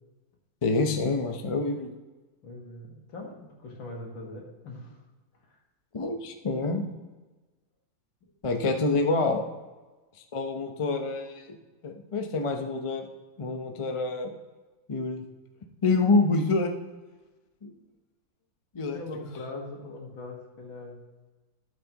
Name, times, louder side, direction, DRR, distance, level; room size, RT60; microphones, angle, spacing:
voice 1, 0.6-1.9 5.9-6.8 8.4-9.4 10.3-11.5 11.8-13.1 13.4-14.3 14.9-15.3 15.8-16.7 17.6-17.7 18.7-19.0, left 3 dB, 40° left, 4 dB, 0.4 m, -26 dB
voice 2, 2.4-5.0 5.3-5.6 8.2-8.3 8.7-8.8 18.9-21.0, left 2 dB, 85° left, 0 dB, 2.6 m, -41 dB
12.5 x 7.9 x 3.0 m, 1.2 s
omnidirectional pair, 2.1 m